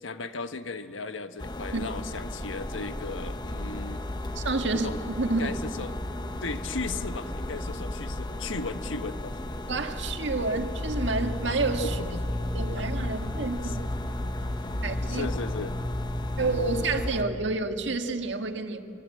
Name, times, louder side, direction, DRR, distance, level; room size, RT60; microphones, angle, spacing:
voice 1, 0.0-4.0 4.6-5.9 6.4-9.4 12.0-12.2 13.6-13.9 15.1-15.7, left 3 dB, 85° left, 9 dB, 1.2 m, -36 dB
sound 1, 1.4-17.2, left 1 dB, 25° left, 1.2 m, -33 dB
voice 2, 4.4-5.5 9.7-12.0 12.5-13.8 14.8-15.3 16.4-18.8, right 3 dB, 70° right, 6 dB, 1.8 m, -29 dB
25.0 x 23.0 x 8.4 m, 2.8 s
head